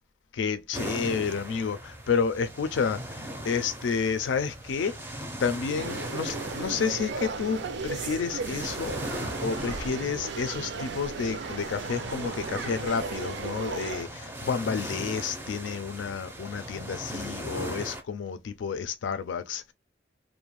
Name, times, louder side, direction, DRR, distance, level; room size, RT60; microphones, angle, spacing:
voice 1, 0.3-19.7, left 6 dB, 90° left, 0.4 m, -30 dB
sound 1, 0.7-18.0, equal, 10° right, 0.4 m, -39 dB
sound 2, 5.8-14.0, right 4 dB, 70° right, 0.4 m, -36 dB
2.5 x 2.1 x 2.9 m
head